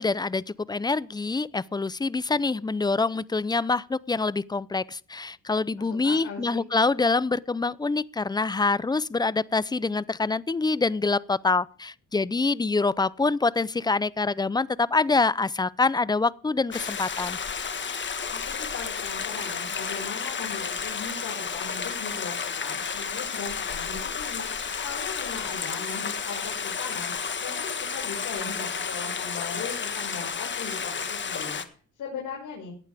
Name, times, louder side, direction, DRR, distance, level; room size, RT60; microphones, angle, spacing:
voice 1, 0.0-17.4, left 3 dB, 15° left, 0.5 m, -25 dB
voice 2, 5.8-6.6 18.3-27.1 27.4-31.6 32.0-32.7, left 5 dB, 75° left, 5.7 m, -39 dB
Stream, 16.7-31.6, left 6 dB, 40° left, 1.6 m, -32 dB
17.5 x 12.0 x 3.5 m
cardioid pair, 90°, 30 cm